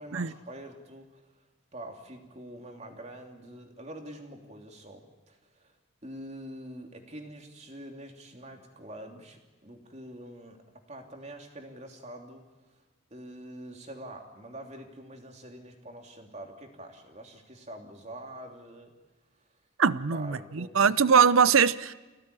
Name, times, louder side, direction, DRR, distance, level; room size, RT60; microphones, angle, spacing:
voice 1, 0.0-1.5 1.7-12.8 13.1-18.9 19.4-19.5 20.1-20.9, right 1 dB, 30° right, 3.1 m, -45 dB
voice 2, 19.8-21.9, right 6 dB, 75° right, 0.7 m, -22 dB
26.5 x 17.5 x 9.9 m
head